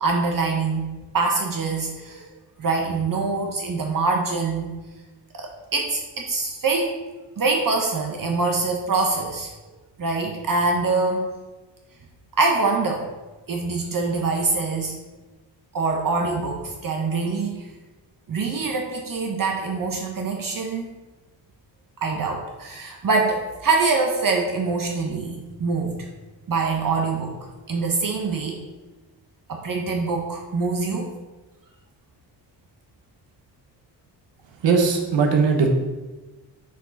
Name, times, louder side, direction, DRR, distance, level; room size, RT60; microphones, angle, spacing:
voice 1, 0.0-2.3 2.6-4.7 5.3-6.9 7.4-9.5 10.0-11.3 12.4-13.1 13.5-15.0 15.7-17.6 18.3-20.9 22.0-26.0 26.5-27.4 27.7-28.6 29.5-31.1, right 3 dB, 45° right, 2 dB, 0.9 m, -24 dB
voice 2, 34.6-35.7, right 5 dB, 75° right, 3 dB, 1.1 m, -19 dB
6.4 x 5.2 x 4.0 m, 1.2 s
cardioid pair, 110°, 45 cm